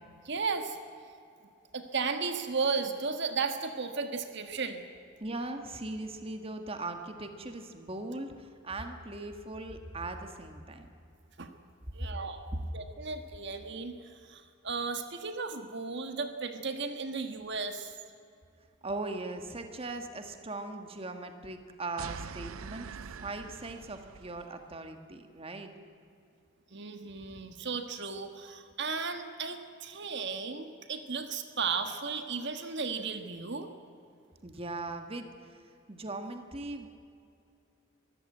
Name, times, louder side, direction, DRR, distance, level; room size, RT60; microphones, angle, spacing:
voice 1, 0.2-0.8 1.7-4.8 11.4-11.5 11.9-12.4 12.7-18.0 26.7-33.7, right 4 dB, 55° right, 7 dB, 1.5 m, -35 dB
voice 2, 5.2-10.9 18.8-22.9 23.2-25.7 34.4-35.6 35.9-36.9, right 2 dB, 30° right, 6 dB, 1.5 m, -39 dB
sound 1, 22.0-24.5, right 6 dB, 90° right, 0.6 m, -44 dB
23.5 x 15.0 x 8.9 m, 2.5 s
head